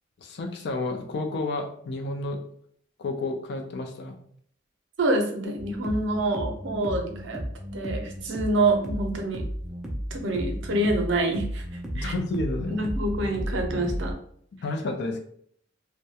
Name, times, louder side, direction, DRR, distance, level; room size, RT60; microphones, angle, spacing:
voice 1, 0.2-2.4 3.0-4.2 11.9-12.8 14.6-15.2, left 2 dB, 60° left, 4 dB, 0.4 m, -30 dB
voice 2, 5.0-7.4 7.7-9.5 10.1-11.6 12.0-12.1 12.8-14.2, right 2 dB, 65° right, 3 dB, 0.5 m, -26 dB
sound 1, 5.6-14.1, equal, 5° right, 0.4 m, -34 dB
2.3 x 2.1 x 2.8 m, 0.63 s
head